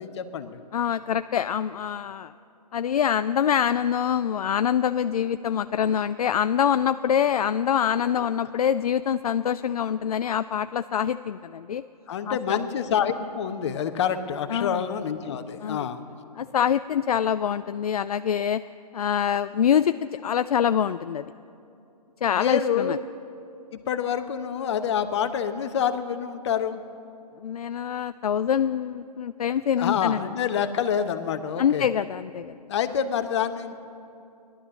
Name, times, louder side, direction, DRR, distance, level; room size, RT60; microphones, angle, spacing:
voice 1, 0.0-0.6 8.1-8.2 12.1-16.0 22.3-23.0 23.7-26.8 29.8-31.9 32.7-33.7, left 8 dB, 45° left, 9 dB, 1.0 m, -27 dB
voice 2, 0.7-2.3 2.7-11.8 12.3-12.6 14.5-14.8 15.6-15.9 16.4-18.6 18.9-21.3 22.2-23.0 27.4-30.2 31.6-32.6, left 8 dB, 65° left, 12 dB, 0.4 m, -25 dB
18.0 x 11.5 x 6.5 m, 2.6 s
figure-of-eight pair, 135°, 21 cm